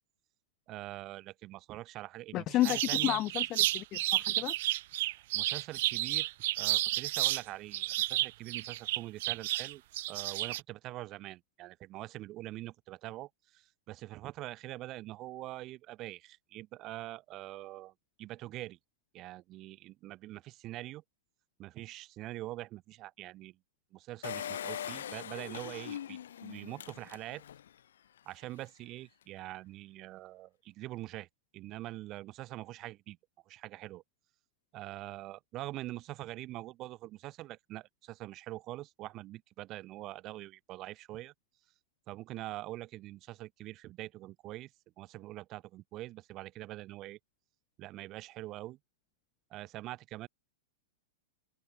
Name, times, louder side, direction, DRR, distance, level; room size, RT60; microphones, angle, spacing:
voice 1, 0.7-3.2 5.0-6.3 6.6-9.8 10.1-17.9 18.2-18.8 19.1-21.0 21.6-23.6 23.9-27.4 28.3-31.3 31.5-33.2 33.5-34.0 34.7-41.3 42.1-44.7 45.0-47.2 47.8-48.8 49.5-50.3, right 16 dB, 25° right, 5.4 m, -44 dB
voice 2, 2.3-4.5, left 15 dB, 25° left, 0.6 m, -31 dB
sound 1, 2.6-7.4 7.7-10.6, right 16 dB, 45° right, 0.3 m, -31 dB
Engine, 24.2-27.7 28.2-28.3 28.4-28.5, left 10 dB, 75° left, 6.8 m, -41 dB
open air
supercardioid pair, 175°, 0 cm